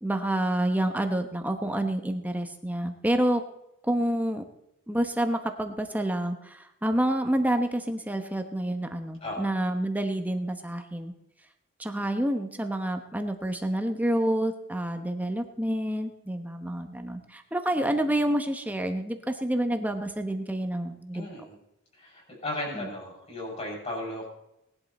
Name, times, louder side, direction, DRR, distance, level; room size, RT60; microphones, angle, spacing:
voice 1, 0.0-3.4 3.8-4.4 4.9-11.1 11.8-21.3 22.7-22.9, right 1 dB, 5° right, 6 dB, 0.9 m, -28 dB
voice 2, 21.1-21.4 21.9-24.3, left 1 dB, 30° left, -2 dB, 6.5 m, -35 dB
19.0 x 11.5 x 4.2 m, 0.83 s
head